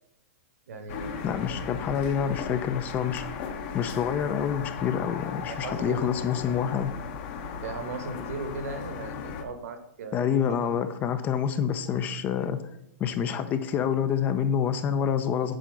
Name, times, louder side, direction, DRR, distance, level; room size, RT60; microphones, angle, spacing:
voice 1, 0.7-1.2 5.5-6.5 7.6-10.3 10.6-10.7, right 4 dB, 70° right, 8 dB, 1.2 m, -37 dB
sound 1, 0.9-9.4, left 6 dB, 40° left, 0.9 m, -37 dB
voice 2, 1.2-3.5 3.7-6.9 10.1-12.6 13.0-15.6, left 8 dB, 20° left, 11 dB, 0.4 m, -27 dB
7.5 x 4.4 x 5.1 m, 0.79 s
hypercardioid pair, 155°, 8 cm